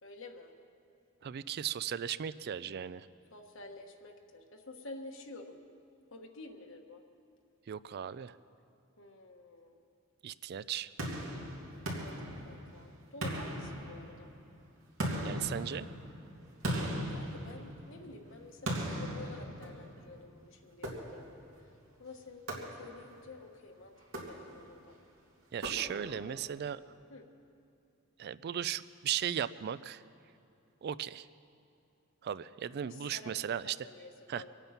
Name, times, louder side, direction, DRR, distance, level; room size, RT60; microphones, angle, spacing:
voice 1, 0.0-0.5 3.3-5.6 6.1-7.0 9.0-9.8 11.9-14.3 17.1-21.3 22.0-24.9 25.9-26.6 27.1-27.3 32.8-34.5, left 2 dB, 65° left, 3 dB, 1.3 m, -50 dB
voice 2, 1.2-3.1 7.7-8.3 10.2-10.9 15.2-15.9 25.5-26.8 28.2-30.0 30.8-31.3 32.2-33.8 34.3-34.4, right 9 dB, 50° right, 17 dB, 0.4 m, -36 dB
sound 1, 11.0-12.8 13.2-14.4 15.0-18.0 18.6-20.1 20.8-21.5 22.5-23.2 24.0-24.8 25.6-26.3, equal, 75° right, 2.5 m, -38 dB
24.5 x 9.2 x 5.8 m, 2.7 s
head